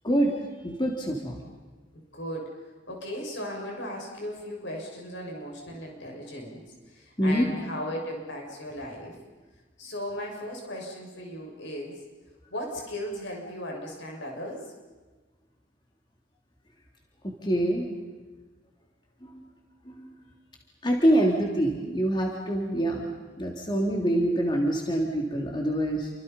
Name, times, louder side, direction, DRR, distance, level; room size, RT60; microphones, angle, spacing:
voice 1, 0.0-0.4 0.6-1.4 7.2-7.5 17.2-17.9 19.2-19.5 19.8-20.1 20.8-23.1 23.4-26.1, right 1 dB, 25° left, 0 dB, 3.2 m, -25 dB
voice 2, 1.9-2.5 2.9-6.6 6.9-9.2 9.8-12.0 12.5-14.6, equal, 65° left, 0 dB, 6.7 m, -36 dB
30.0 x 26.5 x 5.6 m, 1.3 s
head